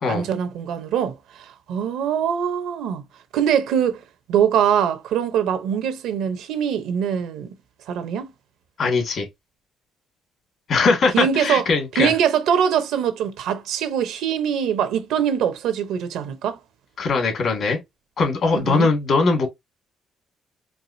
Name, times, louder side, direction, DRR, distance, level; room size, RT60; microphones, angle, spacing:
voice 1, 0.1-3.0 3.3-4.0 4.3-7.5 7.9-8.3 11.1-11.6 11.9-16.6 18.6-18.9, right 8 dB, 85° right, 0.7 m, -23 dB
voice 2, 8.8-9.3 10.7-12.1 17.0-17.8 18.2-19.5, left 4 dB, 60° left, 2.0 m, -20 dB
4.6 x 2.5 x 2.7 m
cardioid pair, 90°, 0 cm